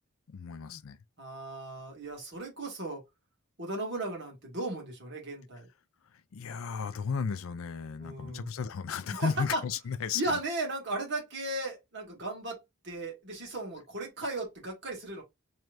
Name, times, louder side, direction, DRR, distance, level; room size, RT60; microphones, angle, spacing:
voice 1, 0.3-1.0 6.3-10.4, left 6 dB, 70° left, 0.4 m, -34 dB
voice 2, 1.2-3.0 3.6-5.7 8.0-8.5 9.1-9.6 10.1-15.2, right 2 dB, 50° right, 2.1 m, -36 dB
4.5 x 3.2 x 2.5 m
head